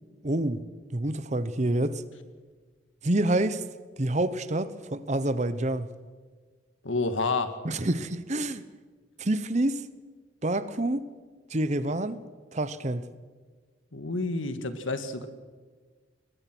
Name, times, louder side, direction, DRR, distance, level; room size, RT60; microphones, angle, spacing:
voice 1, 0.2-0.6 0.9-2.0 3.0-3.6 4.0-5.9 7.6-8.6 9.2-9.8 10.4-11.0 11.5-12.2 12.5-13.1, right 1 dB, 35° right, 0.9 m, -27 dB
voice 2, 6.8-7.5 13.9-15.3, left 3 dB, 85° left, 1.8 m, -29 dB
22.0 x 20.5 x 6.1 m
head